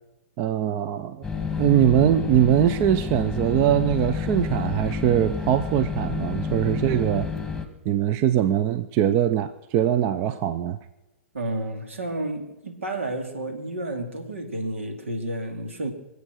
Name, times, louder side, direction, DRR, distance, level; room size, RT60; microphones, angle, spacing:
voice 1, 0.4-1.2 1.6-7.3 7.8-10.8, right 10 dB, 40° right, 13 dB, 0.6 m, -22 dB
sound 1, 1.2-7.7, left 5 dB, 5° left, 1.8 m, -29 dB
voice 2, 11.3-15.9, right 1 dB, 80° right, 6 dB, 2.7 m, -31 dB
24.5 x 8.3 x 6.4 m, 0.97 s
hypercardioid pair, 115°, 7 cm